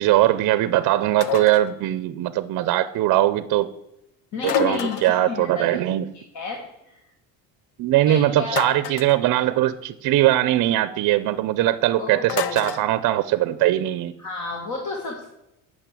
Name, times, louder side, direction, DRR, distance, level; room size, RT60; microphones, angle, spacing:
voice 1, 0.0-3.7 4.4-6.0 7.8-14.1, right 14 dB, 55° right, 13 dB, 0.6 m, -21 dB
sound 1, 1.2-1.7 4.4-5.3 8.5-9.2 12.3-12.9, left 11 dB, 75° left, 0.7 m, -29 dB
voice 2, 4.3-5.8 6.3-7.0 8.1-8.6 12.0-12.7 14.2-15.3, left 3 dB, 45° left, 1 dB, 1.7 m, -31 dB
8.8 x 6.4 x 7.5 m, 0.86 s
cardioid pair, 130°, 38 cm